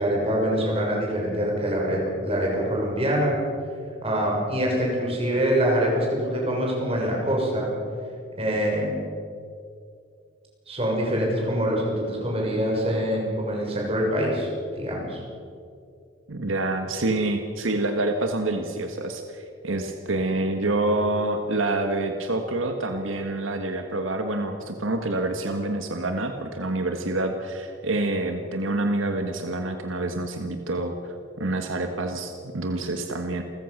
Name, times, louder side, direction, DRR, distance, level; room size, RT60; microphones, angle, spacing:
voice 1, 0.0-3.4 4.0-7.7 8.4-8.9 10.7-15.2, equal, 30° right, -2 dB, 6.4 m, -25 dB
voice 2, 16.3-30.9 31.4-33.4, right 2 dB, 85° right, 5 dB, 1.7 m, -27 dB
29.5 x 14.5 x 6.7 m, 2.3 s
head